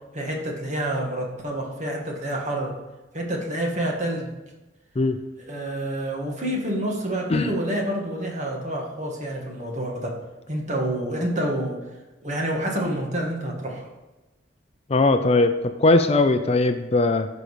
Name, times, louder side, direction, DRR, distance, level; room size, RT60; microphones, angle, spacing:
voice 1, 0.1-2.7 3.1-4.3 5.5-10.1 10.5-11.7 12.2-13.8, right 1 dB, 40° right, 0 dB, 2.0 m, -28 dB
voice 2, 14.9-17.3, left 2 dB, 35° left, 8 dB, 0.5 m, -20 dB
14.5 x 5.3 x 5.0 m, 1.1 s
head